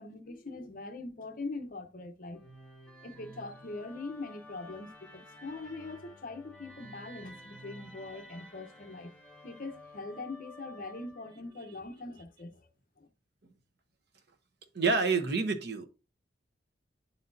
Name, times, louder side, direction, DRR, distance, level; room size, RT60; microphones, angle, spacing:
voice 1, 0.0-2.5 3.0-9.1 9.4-12.7 13.0-13.1, left 3 dB, 50° left, 0.8 m, -42 dB
Musical instrument, 2.3-11.5, left 1 dB, 5° left, 1.6 m, -52 dB
voice 2, 14.7-15.9, right 4 dB, 65° right, 1.0 m, -28 dB
10.5 x 4.1 x 2.7 m
head